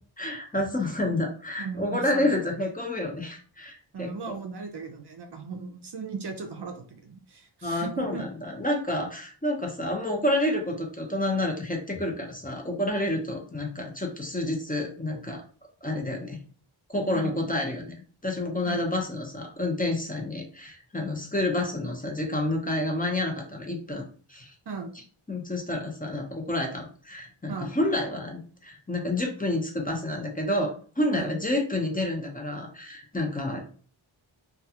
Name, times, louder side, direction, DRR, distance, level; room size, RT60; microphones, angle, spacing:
voice 1, 0.2-4.4 7.6-15.4 15.8-16.4 16.9-17.9 18.2-24.5 25.3-33.6, left 1 dB, 15° left, 1 dB, 0.6 m, -29 dB
voice 2, 1.6-2.4 3.9-8.2 17.1-17.5 18.7-18.8 24.7-24.9 27.5-27.8 31.1-31.4, right 4 dB, 55° right, 4 dB, 0.5 m, -37 dB
2.4 x 2.2 x 2.7 m, 0.42 s
wide cardioid pair, 45°, 49 cm